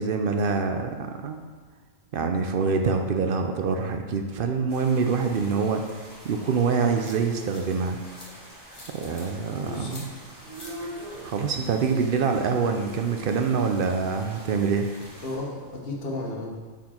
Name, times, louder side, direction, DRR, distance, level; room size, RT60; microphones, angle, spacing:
voice 1, 0.0-1.4 2.1-5.8 6.2-8.0 8.9-10.0 11.2-14.9, right 5 dB, 60° right, 5 dB, 0.6 m, -25 dB
sound 1, 4.7-15.4, right 1 dB, 15° right, 1.6 m, -47 dB
sound 2, 6.3-6.4 7.0-7.6 8.1-8.3 8.7-9.3 9.9-10.0 10.5-10.7, left 1 dB, 25° left, 1.1 m, -45 dB
voice 2, 9.6-10.0 15.2-16.6, left 2 dB, 50° left, -2 dB, 1.2 m, -33 dB
sound 3, 9.8-15.8, equal, 90° right, 1.4 m, -45 dB
5.9 x 4.5 x 4.3 m, 1.5 s
omnidirectional pair, 1.3 m